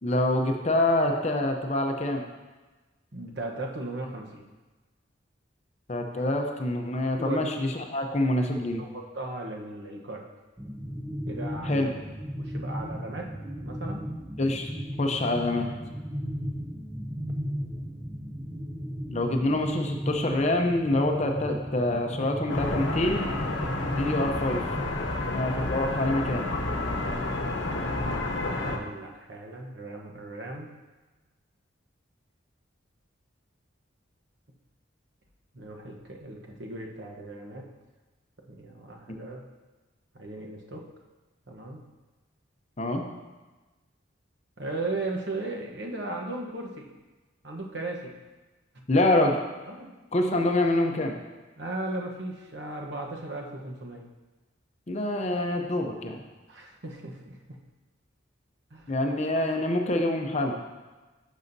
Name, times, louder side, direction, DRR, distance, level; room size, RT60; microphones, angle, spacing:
voice 1, 0.0-2.2 5.9-8.8 11.7-11.9 14.4-14.7 15.0-15.7 19.1-23.3 23.9-24.6 25.3-26.4 42.8-43.0 48.9-49.4 50.1-51.2 54.9-56.2 58.9-60.6, left 1 dB, 35° left, 3 dB, 0.6 m, -26 dB
voice 2, 3.1-4.5 7.2-7.5 8.8-10.2 11.3-11.9 12.4-13.3 13.6-14.1 28.3-30.7 35.5-37.7 38.5-39.4 40.1-40.8 41.5-41.8 44.6-46.9 47.4-48.1 49.7-49.9 51.6-54.0 56.5-57.6 58.7-58.9, right 2 dB, 60° right, 0 dB, 1.0 m, -37 dB
sound 1, 10.6-24.9, equal, 10° right, 0.5 m, -35 dB
sound 2, 22.5-28.8, left 2 dB, 70° left, 0.9 m, -30 dB
11.0 x 6.3 x 2.7 m, 1.2 s
head